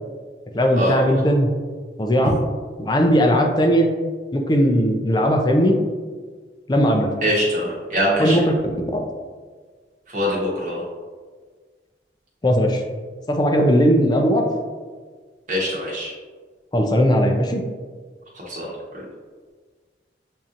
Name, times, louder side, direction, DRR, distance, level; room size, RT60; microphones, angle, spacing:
voice 1, 0.5-1.5 2.0-2.3 2.8-3.9 4.3-5.7 6.7-7.1 8.2-8.6 8.9-9.0 12.4-12.8 13.3-14.4 16.7-17.6, equal, 25° left, 3 dB, 0.4 m, -18 dB
voice 2, 7.2-8.4 10.1-10.8 15.5-16.1 18.5-18.7, equal, 45° right, -5 dB, 1.0 m, -23 dB
7.1 x 2.7 x 2.5 m, 1.5 s
head